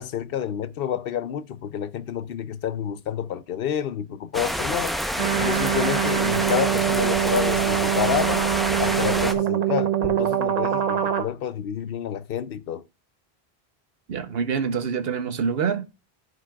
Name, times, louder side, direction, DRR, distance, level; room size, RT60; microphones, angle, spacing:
voice 1, 0.0-5.0 5.3-8.4 8.8-12.8, left 9 dB, 70° left, 0.8 m, -29 dB
sound 1, 4.3-9.3, equal, ahead, 0.5 m, -27 dB
sound 2, 5.2-11.2, right 10 dB, 50° right, 0.6 m, -24 dB
voice 2, 14.1-15.8, right 6 dB, 70° right, 1.0 m, -26 dB
14.0 x 5.1 x 2.3 m
omnidirectional pair, 1.0 m